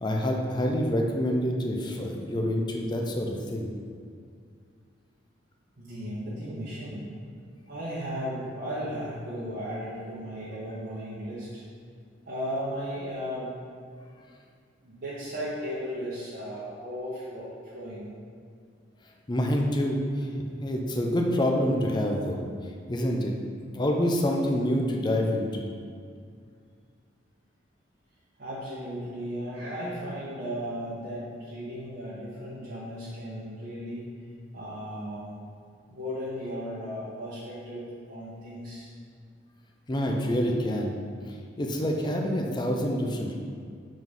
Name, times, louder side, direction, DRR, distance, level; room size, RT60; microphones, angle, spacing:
voice 1, 0.0-3.7 19.3-22.4 22.9-23.3 23.7-25.7 39.9-41.0 41.6-43.3, equal, 25° left, 1 dB, 0.5 m, -27 dB
voice 2, 5.8-7.1 7.7-11.6 12.2-13.5 14.8-18.1 28.4-34.0 34.5-35.4 35.9-38.9, equal, 55° right, -10 dB, 1.1 m, -35 dB
5.1 x 3.8 x 5.3 m, 2.2 s
head